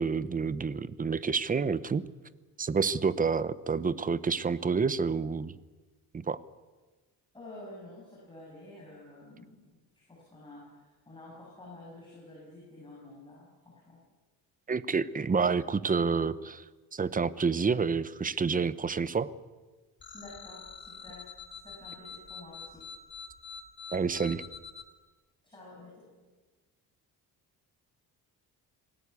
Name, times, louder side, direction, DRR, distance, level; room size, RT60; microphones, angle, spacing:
voice 1, 0.0-2.0 2.6-5.5 6.1-6.4 14.7-16.6 16.9-19.3 23.9-24.4, right 5 dB, 20° right, 16 dB, 0.8 m, -28 dB
voice 2, 7.3-9.8 10.1-14.0 20.1-22.9 25.4-26.1, left 2 dB, 10° left, -5 dB, 7.8 m, -50 dB
sound 1, 20.0-24.8, left 6 dB, 30° left, 3.3 m, -45 dB
27.0 x 18.5 x 8.4 m, 1.3 s
cardioid pair, 145°, 38 cm